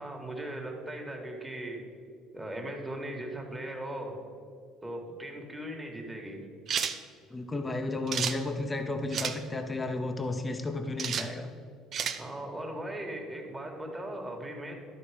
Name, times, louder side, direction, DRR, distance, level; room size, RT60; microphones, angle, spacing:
voice 1, 0.0-1.8 2.3-4.2 4.8-6.4 12.2-14.8, right 1 dB, 15° right, 1 dB, 1.7 m, -38 dB
sound 1, 6.7-7.0 8.1-8.4 9.1-9.4 11.0-11.3 11.9-12.2, right 7 dB, 50° right, 0.6 m, -31 dB
voice 2, 7.3-11.5, left 2 dB, 20° left, 5 dB, 0.8 m, -33 dB
12.0 x 4.2 x 5.0 m, 2.3 s
supercardioid pair, 90°, 0 cm